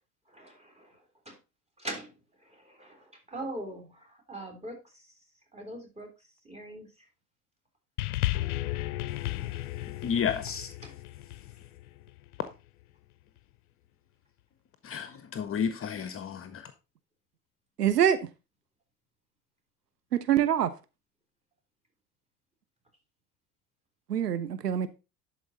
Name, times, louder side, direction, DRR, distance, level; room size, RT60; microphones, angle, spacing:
voice 1, 0.3-1.4 1.8-5.2 5.5-7.1 10.8-10.9, right 1 dB, 15° right, 3.2 m, -43 dB
sound 1, 8.0-12.5 13.4-13.5, left 16 dB, 65° left, 0.5 m, -34 dB
voice 2, 10.0-10.7 14.8-16.7, left 7 dB, 30° left, 0.8 m, -31 dB
voice 3, 17.8-18.2 20.1-20.7 24.1-24.9, right 10 dB, 85° right, 0.6 m, -24 dB
11.5 x 4.5 x 4.0 m
figure-of-eight pair, 65°, 46 cm